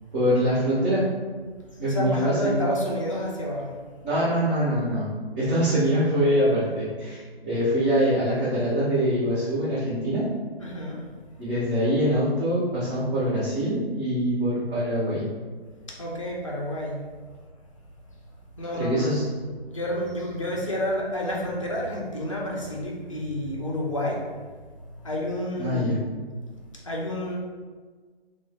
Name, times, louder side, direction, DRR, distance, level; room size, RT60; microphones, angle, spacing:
voice 1, 0.1-1.0 1.8-2.6 4.0-10.3 11.4-15.3 18.7-19.3 25.6-26.0, equal, 50° right, -13 dB, 1.3 m, -24 dB
voice 2, 1.9-3.7 10.6-11.0 15.9-17.0 18.6-19.2 19.7-24.2 25.0-26.0 26.8-27.4, equal, 30° left, -3 dB, 0.4 m, -29 dB
2.9 x 2.4 x 2.2 m, 1.5 s
figure-of-eight pair, 145°, 31 cm